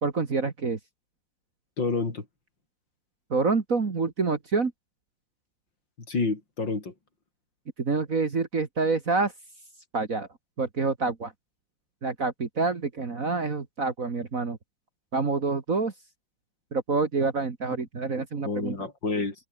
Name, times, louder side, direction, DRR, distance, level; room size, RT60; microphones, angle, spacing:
voice 1, 0.0-0.8 3.3-4.7 7.8-9.3 9.9-10.3 10.6-11.3 12.0-14.6 15.1-15.9 16.7-18.8, right 4 dB, 45° right, 2.3 m, -27 dB
voice 2, 1.8-2.2 6.1-6.9 18.4-19.3, left 3 dB, 65° left, 4.7 m, -28 dB
omnidirectional pair, 2.1 m